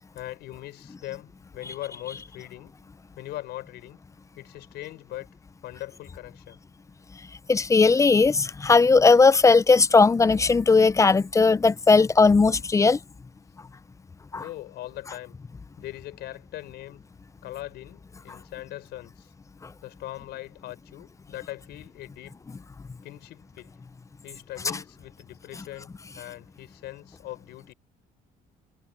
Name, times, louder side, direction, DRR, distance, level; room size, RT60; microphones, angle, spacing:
voice 1, 0.1-2.7 3.2-4.0 4.4-5.3 5.6-6.6 14.4-15.4 15.8-17.0 17.4-19.3 19.8-22.4 23.0-23.7 24.2-27.7, left 15 dB, 80° left, 5.2 m, -40 dB
voice 2, 7.5-13.0 14.3-14.4, left 4 dB, 20° left, 0.6 m, -18 dB
cardioid pair, 110°, 17 cm